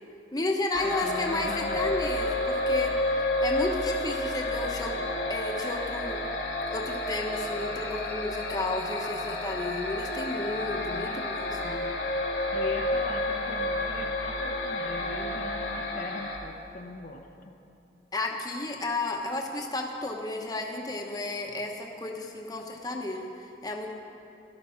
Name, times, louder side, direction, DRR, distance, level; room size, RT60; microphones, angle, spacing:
voice 1, 0.3-2.9 3.4-5.0 5.3-6.2 6.7-11.8 18.1-23.9, left 2 dB, 20° left, 1 dB, 1.0 m, -32 dB
sound 1, 0.7-16.4, left 2 dB, 85° left, 2.4 m, -30 dB
voice 2, 0.8-2.0 10.9-11.3 12.5-17.5, left 2 dB, 50° left, 2 dB, 0.9 m, -40 dB
13.0 x 12.0 x 5.8 m, 2.6 s
head